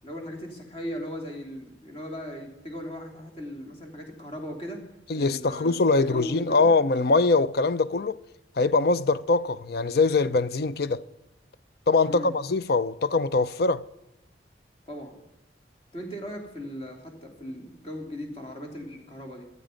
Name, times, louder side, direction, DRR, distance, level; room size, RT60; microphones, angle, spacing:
voice 1, 0.0-4.8 5.1-5.8 6.1-6.7 12.1-12.3 14.9-15.2 15.9-19.4, equal, 35° left, 3.2 m, -38 dB
voice 2, 5.1-8.2 8.6-11.0 11.9-13.8, left 3 dB, 60° left, 0.6 m, -23 dB
17.5 x 12.5 x 5.2 m
head